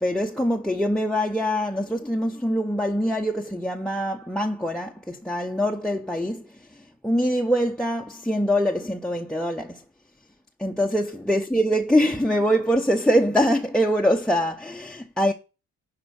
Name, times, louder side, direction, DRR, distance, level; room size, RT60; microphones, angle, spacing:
voice 1, 0.0-9.8 10.6-15.3, equal, 5° left, 0.7 m, -24 dB
11.0 x 4.1 x 6.8 m
cardioid pair, 110°, 31 cm